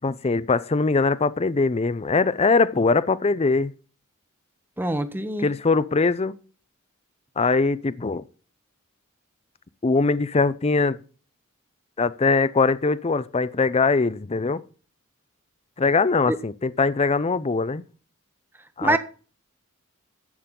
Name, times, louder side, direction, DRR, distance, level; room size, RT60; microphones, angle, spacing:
voice 1, 0.0-3.7 5.4-6.4 7.4-8.2 9.8-11.0 12.0-14.6 15.8-17.8 18.8-19.0, left 4 dB, 30° left, 0.5 m, -22 dB
voice 2, 4.8-5.5 16.3-16.4 18.8-19.0, right 1 dB, 10° right, 0.9 m, -24 dB
12.0 x 8.6 x 3.8 m
head